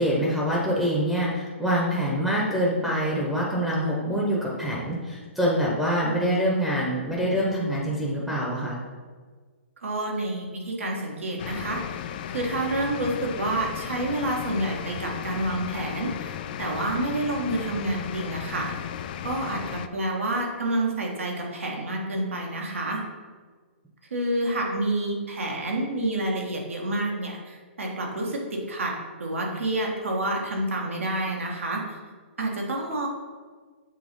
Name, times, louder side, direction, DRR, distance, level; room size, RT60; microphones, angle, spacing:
voice 1, 0.0-8.8, equal, ahead, -4 dB, 0.8 m, -25 dB
voice 2, 9.8-12.0 12.3-16.3 16.6-18.7 19.2-23.0 24.1-31.8 32.4-33.1, right 1 dB, 90° right, -1 dB, 1.6 m, -28 dB
sound 1, 11.4-19.9, left 10 dB, 45° left, 0.3 m, -35 dB
7.4 x 3.0 x 5.2 m, 1.5 s
hypercardioid pair, 145°, 7 cm